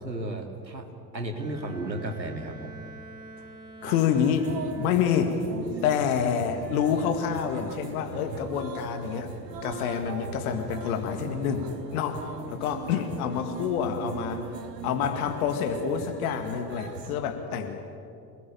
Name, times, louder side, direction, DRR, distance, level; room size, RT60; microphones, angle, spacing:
voice 1, 0.0-0.9 1.1-2.8, right 1 dB, 85° right, 4 dB, 2.4 m, -34 dB
Bowed string instrument, 1.4-5.2, right 2 dB, 10° right, 5.0 m, -47 dB
voice 2, 3.8-5.4 5.8-9.3 9.6-14.4 14.8-18.0, left 8 dB, 60° left, 6 dB, 2.1 m, -27 dB
sound 1, 3.8-17.2, right 5 dB, 70° right, 1.8 m, -39 dB
27.0 x 18.5 x 8.8 m, 2.6 s
figure-of-eight pair, 70°, 50 cm